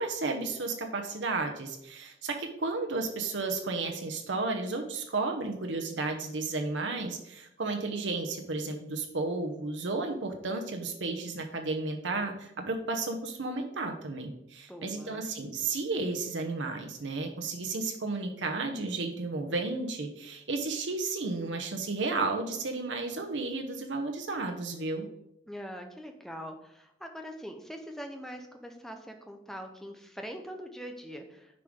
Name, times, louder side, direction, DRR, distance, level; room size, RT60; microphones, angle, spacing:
voice 1, 0.0-25.1, right 3 dB, 85° right, 3 dB, 0.9 m, -33 dB
voice 2, 14.7-15.2 25.5-31.6, equal, ahead, 4 dB, 0.7 m, -43 dB
9.8 x 4.9 x 3.7 m, 0.79 s
head